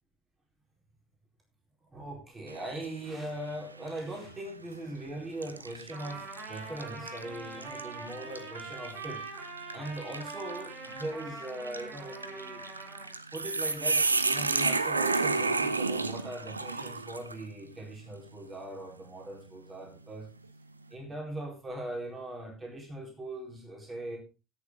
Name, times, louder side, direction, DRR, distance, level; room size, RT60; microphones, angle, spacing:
voice 1, 1.9-9.2 9.7-12.6 13.3-20.3 20.9-24.2, right 1 dB, 25° right, 0 dB, 4.4 m, -40 dB
sound 1, 2.5-3.0 3.5-3.6 4.6-4.8 5.4-17.4, right 3 dB, 85° right, 0.5 m, -32 dB
Trumpet, 5.9-13.1, right 3 dB, 55° right, 3.2 m, -44 dB
17.0 x 7.0 x 3.8 m, 0.30 s
figure-of-eight pair, 60°, 0 cm